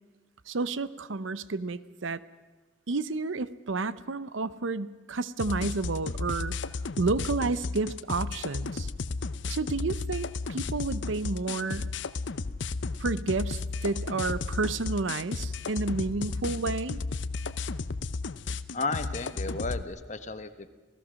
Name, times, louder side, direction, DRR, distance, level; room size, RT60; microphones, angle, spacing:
voice 1, 0.5-2.2 2.9-6.5 7.0-8.9 9.5-11.9 13.0-17.0, right 3 dB, 85° right, 16 dB, 0.8 m, -31 dB
sound 1, 5.4-19.8, left 3 dB, 70° left, 0.7 m, -34 dB
voice 2, 18.7-20.7, left 3 dB, 40° left, 10 dB, 1.2 m, -33 dB
27.5 x 17.0 x 6.4 m, 1.3 s
head